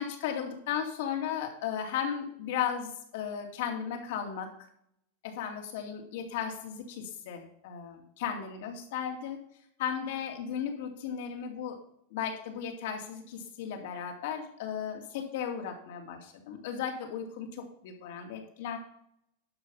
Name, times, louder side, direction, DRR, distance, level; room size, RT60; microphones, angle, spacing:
voice 1, 0.0-4.5 5.2-9.4 9.8-11.8 12.1-18.8, left 8 dB, 65° left, 3 dB, 2.5 m, -35 dB
11.5 x 5.7 x 5.6 m, 0.71 s
supercardioid pair, 145°, 0 cm